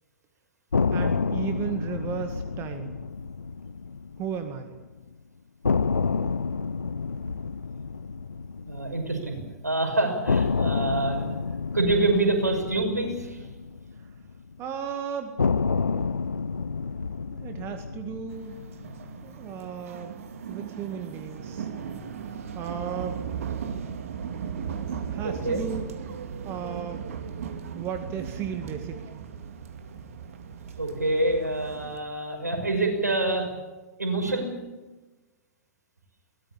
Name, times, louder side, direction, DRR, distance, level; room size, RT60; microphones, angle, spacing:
sound 1, 0.7-4.8 5.1-5.2 5.6-9.7 10.3-14.6 15.4-19.7, left 5 dB, 80° left, 0.7 m, -29 dB
voice 1, 0.9-3.0 4.2-4.7 14.6-15.4 17.3-18.6 19.2-20.2 20.5-21.7 22.5-23.2 25.1-25.9 26.4-27.1 27.7-29.2, right 8 dB, 30° right, 7 dB, 2.0 m, -35 dB
voice 2, 8.7-9.4 9.6-11.2 11.7-13.5 25.2-25.6 30.8-33.5 34.0-34.5, right 2 dB, 80° right, 4 dB, 6.2 m, -26 dB
sound 2, 18.3-32.0, right 7 dB, 60° right, 2.2 m, -37 dB
22.5 x 18.5 x 8.7 m, 1.2 s
figure-of-eight pair, 105°, 9 cm